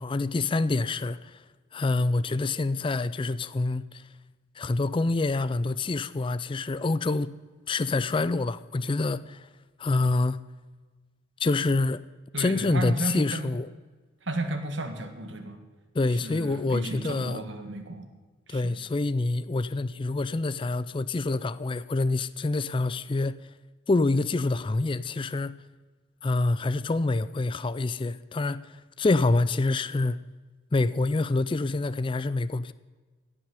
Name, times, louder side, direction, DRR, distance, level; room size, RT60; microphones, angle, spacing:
voice 1, 0.0-1.4 1.7-4.0 4.6-7.3 7.7-9.5 9.8-10.4 11.4-12.0 12.4-13.7 15.9-17.4 18.5-23.4 23.9-25.6 26.2-30.2 30.7-32.7, left 3 dB, 25° left, 0.4 m, -26 dB
voice 2, 12.3-13.5 14.2-15.6 16.2-18.1 18.5-18.8, right 1 dB, 65° right, 1.7 m, -33 dB
17.0 x 6.2 x 9.4 m
head